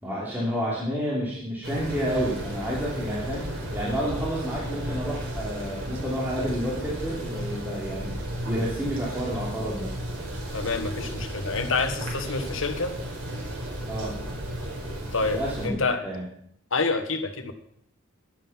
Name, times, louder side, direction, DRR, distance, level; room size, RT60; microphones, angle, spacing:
voice 1, 0.0-3.5 3.7-8.1 8.4-10.0 13.8-14.2 15.2-16.2, equal, 10° right, -6 dB, 3.0 m, -30 dB
sound 1, 1.6-15.7, right 1 dB, 85° right, 4.9 m, -34 dB
voice 2, 10.5-12.9 15.1-16.0 16.7-17.5, left 3 dB, 65° left, 8 dB, 1.5 m, -27 dB
11.5 x 11.0 x 5.8 m, 0.68 s
head